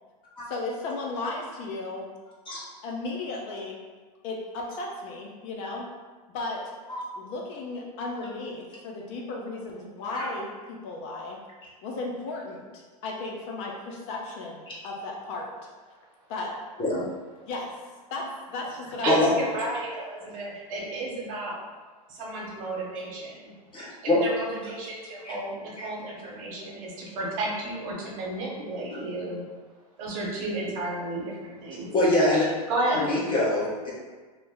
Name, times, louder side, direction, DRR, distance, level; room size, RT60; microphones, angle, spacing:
voice 1, 0.5-2.1 2.8-3.8 4.2-5.9 6.3-6.7 7.2-11.4 11.8-15.5 16.3-16.6 17.5-17.7 18.1-19.2, left 2 dB, 50° left, -1 dB, 0.5 m, -35 dB
voice 2, 19.0-21.6 22.1-23.5 24.0-29.4 30.0-31.9 32.7-33.2, right 2 dB, 55° right, -3 dB, 1.0 m, -32 dB
voice 3, 23.7-24.2 25.2-25.3 25.8-25.9 31.9-32.5 32.9-33.9, left 1 dB, 25° left, -7 dB, 1.1 m, -24 dB
2.7 x 2.0 x 3.5 m, 1.4 s
hypercardioid pair, 120°, 20 cm